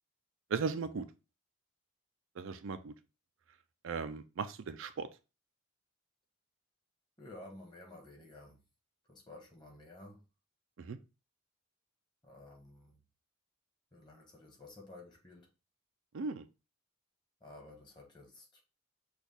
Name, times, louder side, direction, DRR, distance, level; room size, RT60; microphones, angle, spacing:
voice 1, 0.5-1.1 2.4-2.9 3.8-5.1 10.8-11.0 16.1-16.5, right 5 dB, 60° right, 0.4 m, -37 dB
voice 2, 7.2-8.6 9.1-10.2 12.2-13.0 13.9-15.5 17.4-18.6, left 2 dB, 20° left, 1.2 m, -53 dB
6.1 x 2.4 x 3.4 m
head